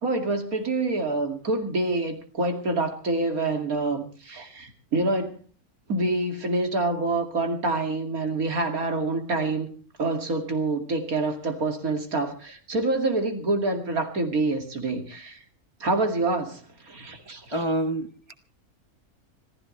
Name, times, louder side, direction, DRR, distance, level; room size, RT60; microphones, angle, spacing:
voice 1, 0.0-5.4 5.9-9.7 10.0-15.4 15.8-17.6, right 2 dB, 75° right, 4 dB, 2.9 m, -27 dB
voice 2, 17.5-18.3, right 1 dB, 25° left, 7 dB, 0.8 m, -27 dB
26.5 x 15.0 x 3.2 m, 0.37 s
omnidirectional pair, 1.5 m